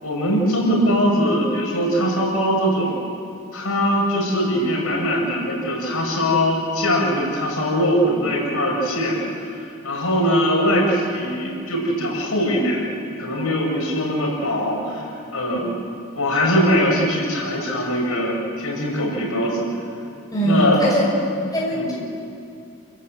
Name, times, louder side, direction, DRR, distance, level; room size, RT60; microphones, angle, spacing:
voice 1, 0.0-3.0 3.5-9.5 9.8-12.9 13.2-15.7 16.2-19.7 20.4-20.9 21.7-21.9, equal, 85° left, -1 dB, 6.4 m, -21 dB
voice 2, 20.3-21.0 21.5-21.9, right 1 dB, 15° left, -5 dB, 6.1 m, -21 dB
29.0 x 16.5 x 8.0 m, 2.5 s
head